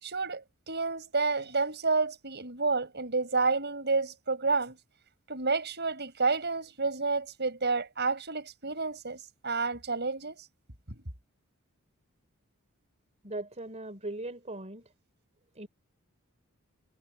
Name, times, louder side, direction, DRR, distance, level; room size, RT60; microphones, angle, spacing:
voice 1, 0.0-4.8 5.3-10.4 10.9-11.0, right 4 dB, 50° right, 6.7 m, -30 dB
voice 2, 13.2-14.9 15.5-15.7, right 2 dB, 30° right, 4.5 m, -39 dB
head